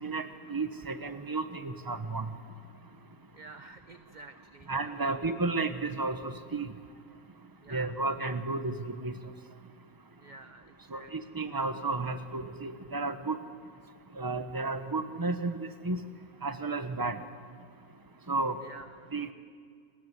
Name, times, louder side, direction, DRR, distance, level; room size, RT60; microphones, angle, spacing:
voice 1, 0.0-2.3 4.7-6.7 7.7-9.1 10.9-13.4 14.2-16.0 16.4-17.2 18.3-18.6 19.1-19.3, right 3 dB, 15° right, 9 dB, 1.1 m, -32 dB
voice 2, 3.3-5.3 7.6-8.0 10.2-11.1 18.6-19.1, right 3 dB, 35° right, 8 dB, 0.9 m, -51 dB
29.5 x 21.5 x 8.2 m, 2.2 s
omnidirectional pair, 1.5 m